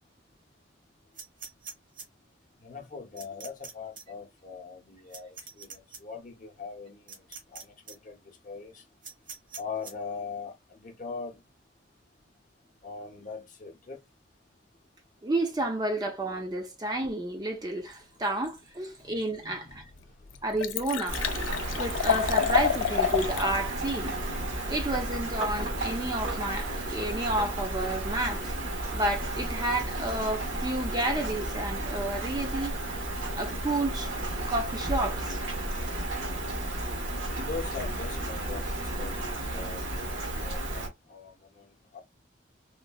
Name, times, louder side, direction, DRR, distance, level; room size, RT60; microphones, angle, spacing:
sound 1, 1.2-2.1 3.2-3.7 4.0-4.1 5.1-6.0 7.1-7.6 7.9-8.0 9.0-9.9, right 5 dB, 45° right, 1.1 m, -42 dB
voice 1, 2.6-7.2 7.5-8.8 9.6-11.4 12.8-14.0 19.4-20.4 37.3-42.0, left 4 dB, 40° left, 0.7 m, -41 dB
voice 2, 15.2-19.8 20.4-21.2 21.7-24.1 24.7-28.5 28.9-32.8 33.3-34.1 34.5-35.4, right 1 dB, 20° right, 0.5 m, -30 dB
Liquid, 19.4-19.5 20.0-20.1 20.3-23.5 23.9-24.0, left 8 dB, 80° left, 0.4 m, -29 dB
Rain, 21.1-40.9, right 1 dB, 80° right, 1.0 m, -33 dB
3.7 x 2.1 x 2.3 m
head